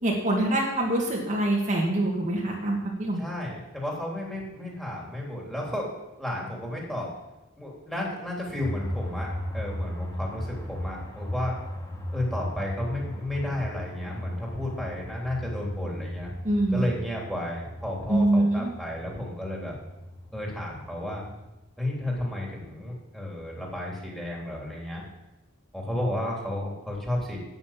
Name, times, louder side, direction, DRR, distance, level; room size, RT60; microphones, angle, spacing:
voice 1, 0.0-3.2 16.4-16.8 18.1-18.7, right 1 dB, 40° right, -2 dB, 2.1 m, -24 dB
voice 2, 3.2-5.9 6.2-7.1 7.6-9.3 9.5-11.6 12.1-16.3 16.7-19.7 20.3-21.2 21.8-25.0 25.7-27.4, left 1 dB, ahead, -3 dB, 3.3 m, -32 dB
sound 1, 8.6-21.5, equal, 15° left, 1.9 m, -37 dB
9.4 x 9.2 x 7.5 m, 0.98 s
head